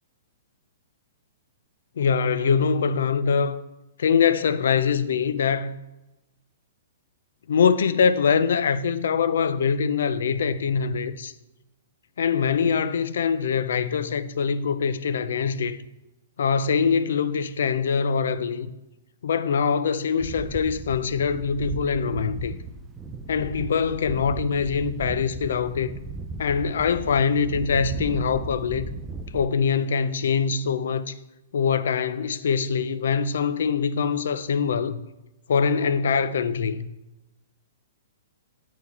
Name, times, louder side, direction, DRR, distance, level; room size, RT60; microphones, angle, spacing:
voice 1, 2.0-3.6 4.0-5.8 7.5-11.3 12.2-15.8 16.4-18.7 19.2-22.5 23.3-25.9 26.4-28.9 29.3-31.1 31.5-35.0 35.5-36.9, left 6 dB, 75° left, 0.5 m, -23 dB
sound 1, 20.2-29.4, right 3 dB, 15° right, 0.5 m, -36 dB
8.1 x 4.5 x 4.1 m
hypercardioid pair, 160°, 0 cm